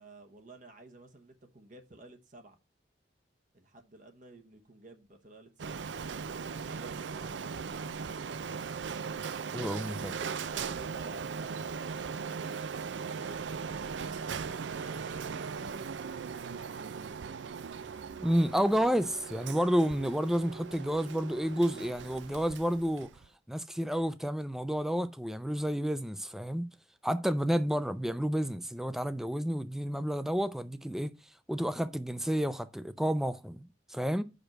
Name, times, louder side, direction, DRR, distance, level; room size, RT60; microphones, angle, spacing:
voice 1, 0.0-2.6 3.5-8.3 9.9-13.8 14.4-15.9 27.5-27.7, right 2 dB, 45° right, 1.0 m, -53 dB
Printer, 5.6-23.3, right 6 dB, 80° right, 0.5 m, -39 dB
voice 2, 9.5-10.1 18.2-23.1 23.5-26.7 27.0-31.1 31.5-34.2, equal, ahead, 0.5 m, -30 dB
6.0 x 5.1 x 6.4 m
head